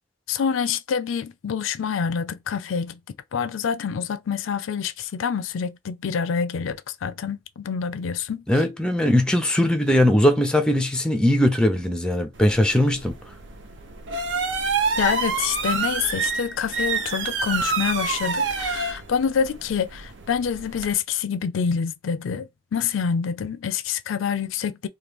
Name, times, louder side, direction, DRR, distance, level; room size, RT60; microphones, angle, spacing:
voice 1, 0.3-3.0 3.3-8.4 15.0-24.9, left 6 dB, 75° left, 0.4 m, -26 dB
voice 2, 8.5-13.1, left 1 dB, 5° left, 0.5 m, -20 dB
sound 1, 12.4-20.9, right 4 dB, 65° right, 0.5 m, -28 dB
2.9 x 2.3 x 3.4 m
head